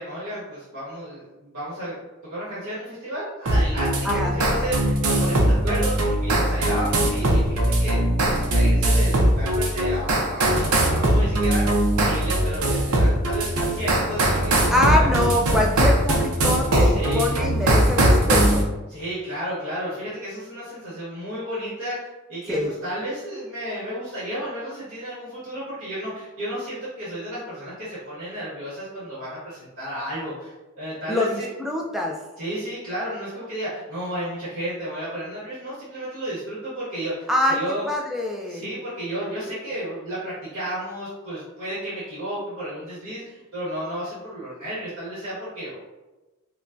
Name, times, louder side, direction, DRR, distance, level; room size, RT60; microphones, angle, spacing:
voice 1, 0.0-8.0 8.2-15.1 16.9-17.4 18.9-31.5 32.4-37.9 38.5-45.8, equal, 45° right, -9 dB, 1.5 m, -32 dB
sound 1, 3.5-18.6, right 1 dB, 80° right, 0.7 m, -20 dB
voice 2, 4.0-4.4 14.7-18.7 22.5-22.7 31.1-32.2 37.3-37.6 37.9-38.6, left 1 dB, ahead, 0 dB, 0.3 m, -24 dB
5.1 x 2.2 x 2.6 m, 1.1 s
head